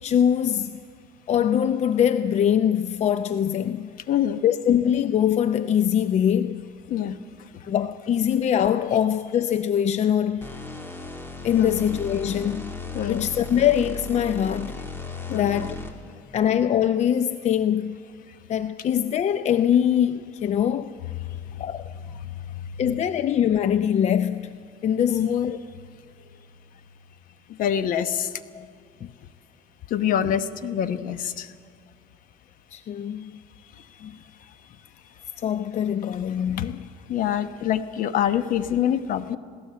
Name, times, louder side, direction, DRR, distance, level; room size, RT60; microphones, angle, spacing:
voice 1, 0.0-0.8 1.3-3.9 4.4-6.7 7.7-10.5 11.4-12.8 13.1-14.8 15.3-15.8 16.3-18.0 18.5-20.9 21.6-21.9 22.8-24.6 24.8-25.6 28.5-28.7 29.0-29.1 32.7-33.3 34.0-34.1 35.4-36.8, left 9 dB, 45° left, 0.6 m, -23 dB
voice 2, 4.1-4.4 6.9-7.2 11.6-11.9 12.9-13.2 15.3-15.6 25.1-25.3 27.6-28.3 29.9-31.5 36.6-36.7 37.1-39.4, left 10 dB, 60° left, 1.1 m, -25 dB
sound 1, 10.4-16.2, left 3 dB, 15° left, 2.2 m, -36 dB
20.5 x 17.0 x 7.6 m
cardioid pair, 100°, 16 cm